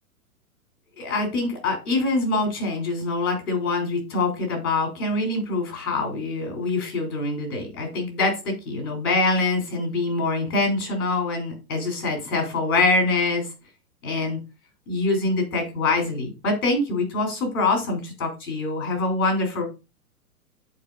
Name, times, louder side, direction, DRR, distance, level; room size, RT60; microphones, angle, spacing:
voice 1, 1.0-13.5 14.0-14.4 14.9-19.6, left 3 dB, 70° left, 3 dB, 3.3 m, -24 dB
10.5 x 4.4 x 2.5 m, 0.28 s
hypercardioid pair, 115°, 45 cm